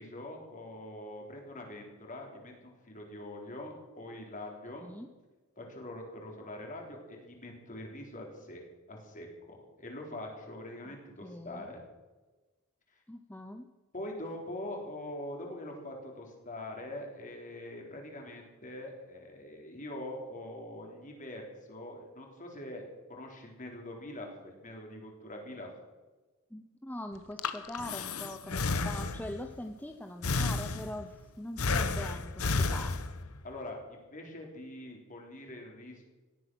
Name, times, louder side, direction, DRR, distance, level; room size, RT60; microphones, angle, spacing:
voice 1, 0.0-4.9 5.6-8.6 8.9-11.8 13.9-25.7 33.4-36.0, left 1 dB, 35° left, 1 dB, 3.7 m, -43 dB
voice 2, 11.2-11.6 13.1-13.7 26.5-32.9, left 1 dB, 10° left, 5 dB, 0.7 m, -42 dB
Breathing, 27.2-29.5 30.2-31.1 31.6-33.4, left 3 dB, 75° left, 1.1 m, -32 dB
18.0 x 12.0 x 6.3 m, 1.2 s
head